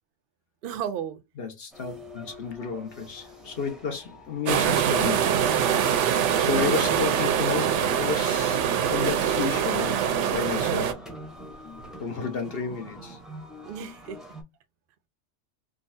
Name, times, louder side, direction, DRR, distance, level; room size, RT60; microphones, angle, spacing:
voice 1, 0.6-1.2 6.4-7.0 13.6-14.2, right 9 dB, 60° right, 0.7 m, -34 dB
voice 2, 1.4-5.3 6.4-8.6 8.9-10.0 10.3-11.0 12.0-13.2, left 5 dB, 55° left, 1.0 m, -31 dB
sound 1, 1.7-14.4, equal, ahead, 0.6 m, -42 dB
sound 2, 4.5-10.9, right 9 dB, 85° right, 0.9 m, -24 dB
3.8 x 2.3 x 2.6 m
omnidirectional pair, 1.2 m